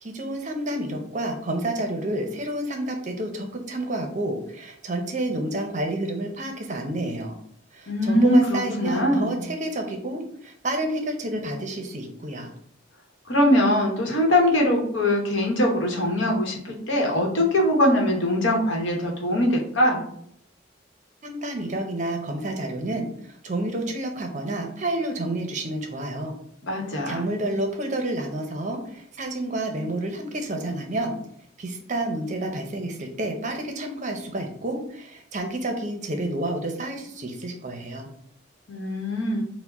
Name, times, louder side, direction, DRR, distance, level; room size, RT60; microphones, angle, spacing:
voice 1, 0.0-7.3 7.7-12.5 21.2-26.3 27.1-31.2 31.6-38.1, right 1 dB, 35° right, 4 dB, 0.6 m, -29 dB
voice 2, 7.9-9.4 13.3-20.0 26.6-27.2 38.7-39.4, left 1 dB, 70° left, 0 dB, 1.0 m, -22 dB
4.7 x 2.1 x 4.1 m, 0.67 s
head